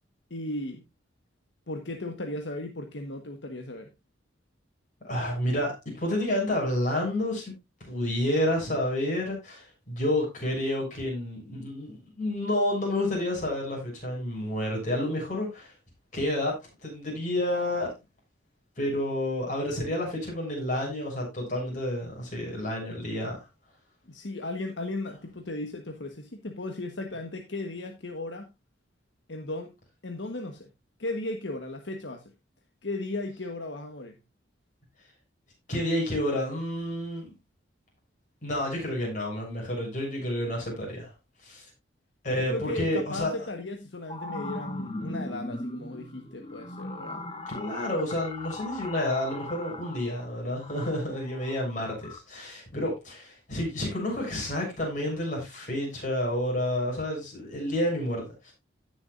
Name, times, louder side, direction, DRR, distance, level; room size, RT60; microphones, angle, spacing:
voice 1, 0.3-0.8 1.7-3.9 24.0-28.5 29.3-29.8 30.0-30.7 31.0-32.3 32.8-34.2 42.4-47.3 52.7-52.8, left 2 dB, 75° left, 1.4 m, -36 dB
voice 2, 5.0-7.5 7.9-15.7 16.1-17.9 18.8-23.4 35.7-37.3 38.4-41.1 41.4-41.6 42.2-43.3 47.5-58.5, left 1 dB, 45° left, 6.8 m, -30 dB
sound 1, 43.8-52.2, left 2 dB, 30° left, 1.1 m, -39 dB
16.5 x 7.1 x 2.6 m
head